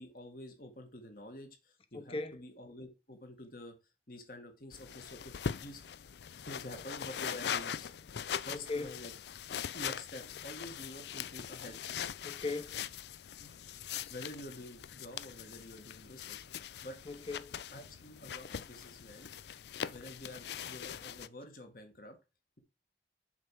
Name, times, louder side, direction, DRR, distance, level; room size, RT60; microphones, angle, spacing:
voice 1, 0.0-3.8 4.1-5.8 6.4-7.9 8.4-9.1 9.7-11.8 13.4-16.4 16.8-17.0 17.7-19.3 19.8-22.2, left 1 dB, 55° left, 1.9 m, -48 dB
voice 2, 1.9-2.4 8.5-8.9 12.2-12.8 17.1-17.6, left 3 dB, 30° left, 0.9 m, -38 dB
sound 1, 4.7-21.3, left 8 dB, 70° left, 0.4 m, -42 dB
7.3 x 4.7 x 5.8 m
head